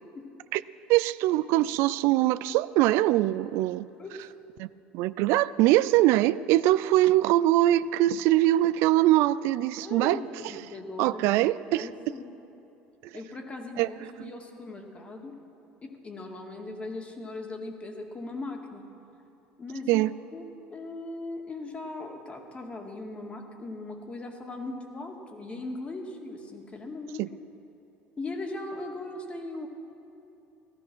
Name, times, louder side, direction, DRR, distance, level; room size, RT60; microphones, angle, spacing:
voice 1, 0.9-3.9 4.6-4.7 4.9-10.2 11.0-11.9 13.0-13.1 13.8-13.9 14.2-14.3 19.9-20.1 27.2-27.3, right 15 dB, 70° right, 0.4 m, -23 dB
voice 2, 4.0-4.3 9.8-11.2 11.7-12.3 13.1-15.4 15.8-18.8 19.6-20.4 20.7-27.3 28.2-29.7, left 2 dB, 25° left, 2.2 m, -39 dB
16.0 x 13.5 x 6.1 m
supercardioid pair, 95°, 5 cm